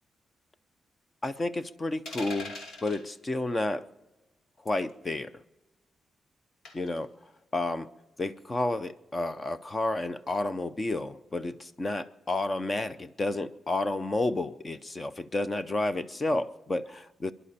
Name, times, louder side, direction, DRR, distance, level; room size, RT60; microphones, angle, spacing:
voice 1, 1.2-2.5 2.8-3.9 4.6-5.3 6.7-7.1 7.5-7.9 8.2-17.3, left 2 dB, 25° left, 0.6 m, -31 dB
sound 1, 2.1-3.0 4.7-4.9 6.7-7.0, left 2 dB, 75° left, 2.4 m, -41 dB
28.5 x 11.0 x 4.3 m
wide cardioid pair, 150°, 0 cm